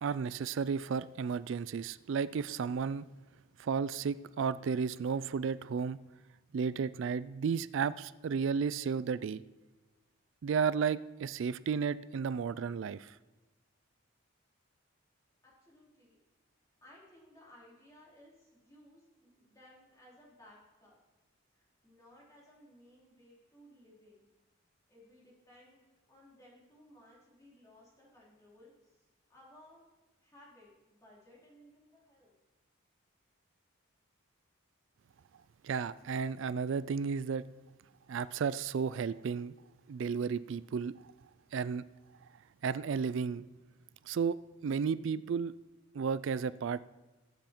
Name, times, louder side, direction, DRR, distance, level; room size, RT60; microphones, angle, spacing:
voice 1, 0.0-3.1 3.6-6.0 6.5-9.4 10.4-13.2 35.6-37.4 38.1-39.5 39.9-40.9 41.5-41.8 42.6-43.4 44.1-44.4 44.6-45.5 45.9-46.8, right 6 dB, 60° right, 0.3 m, -33 dB
voice 2, 15.4-16.2 16.8-21.0 21.5-24.3 24.9-25.8 26.1-29.8 30.2-32.3, left 1 dB, 15° left, 3.6 m, -60 dB
20.0 x 7.7 x 4.5 m
head